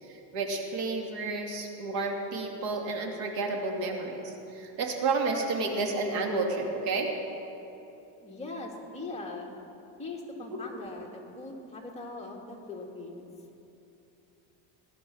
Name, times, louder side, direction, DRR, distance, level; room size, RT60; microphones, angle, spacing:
voice 1, 0.0-7.1, right 3 dB, 70° right, 1 dB, 2.7 m, -31 dB
voice 2, 8.2-9.6 10.0-13.3, left 2 dB, 15° left, -1 dB, 1.8 m, -40 dB
20.0 x 11.5 x 6.4 m, 3.0 s
cardioid pair, 150°, 43 cm